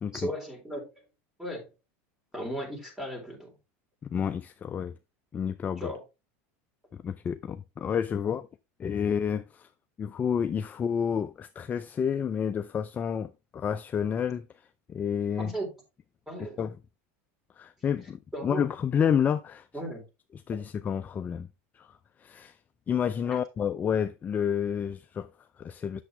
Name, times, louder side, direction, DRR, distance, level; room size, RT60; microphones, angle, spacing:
voice 1, 0.1-1.1 1.4-1.7 2.3-3.5 5.8-6.0 15.4-15.7 16.3-16.6 18.3-18.7 19.7-20.1 23.2-23.4, right 1 dB, 5° right, 3.8 m, -36 dB
voice 2, 4.0-5.0 5.3-5.9 6.9-8.5 8.8-9.7 10.0-14.5 14.9-15.5 16.6-16.7 17.6-19.7 20.5-21.5 21.7-22.6 22.9-26.0, left 7 dB, 25° left, 0.4 m, -30 dB
8.4 x 6.8 x 3.3 m
supercardioid pair, 130°, 7 cm